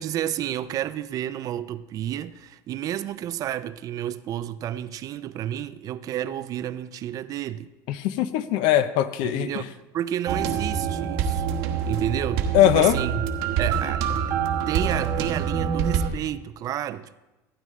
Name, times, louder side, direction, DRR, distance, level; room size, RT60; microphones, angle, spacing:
voice 1, 0.0-7.7 9.2-13.2 13.6-14.0 14.7-17.2, right 11 dB, 50° right, 0.5 m, -31 dB
voice 2, 7.9-9.5 12.5-13.0, left 12 dB, 75° left, 0.6 m, -20 dB
sound 1, 10.3-16.1, right 7 dB, 75° right, 1.1 m, -26 dB
15.5 x 9.1 x 3.2 m
supercardioid pair, 110°, 8 cm